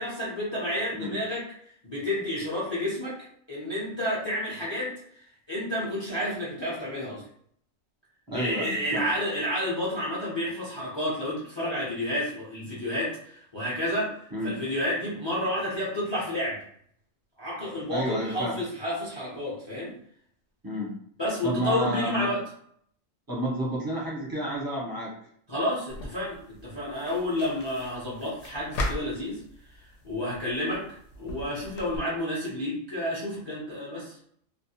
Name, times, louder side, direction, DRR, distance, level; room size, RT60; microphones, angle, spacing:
voice 1, 0.0-1.5 1.8-5.0 5.5-7.3 8.3-16.6 17.4-19.9 21.2-22.4 25.5-29.4 30.0-34.2, left 1 dB, 30° left, -6 dB, 0.5 m, -30 dB
voice 2, 8.3-9.0 14.3-14.5 17.9-18.6 20.6-20.9 21.4-22.3 23.3-25.1, equal, 25° right, -6 dB, 0.5 m, -30 dB
sound 1, 25.9-32.0, left 1 dB, 65° left, 0.8 m, -39 dB
2.3 x 2.1 x 2.8 m, 0.64 s
omnidirectional pair, 1.4 m